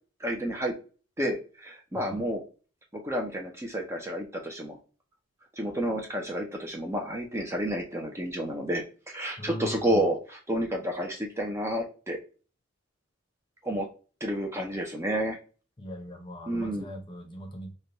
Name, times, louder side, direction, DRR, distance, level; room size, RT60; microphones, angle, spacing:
voice 1, 0.2-0.7 1.2-2.4 3.0-4.8 5.6-12.2 13.6-13.9 14.2-15.4 16.5-16.9, right 1 dB, 15° right, 0.5 m, -30 dB
voice 2, 9.4-10.1 15.8-17.7, equal, 25° left, 0.7 m, -40 dB
3.3 x 2.2 x 3.8 m
head